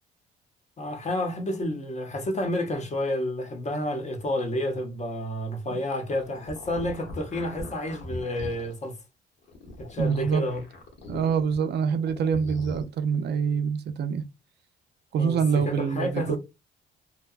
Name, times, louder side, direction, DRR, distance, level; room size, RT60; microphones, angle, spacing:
voice 1, 0.8-9.0 9.8-10.6 15.1-16.4, left 1 dB, 35° left, 0.7 m, -30 dB
sound 1, 6.1-8.7 9.4-11.6 11.9-12.8, left 2 dB, 70° left, 1.0 m, -40 dB
voice 2, 10.0-10.4 11.1-14.2 15.1-16.4, right 6 dB, 60° right, 0.4 m, -25 dB
2.7 x 2.2 x 2.3 m
cardioid pair, 90°, 20 cm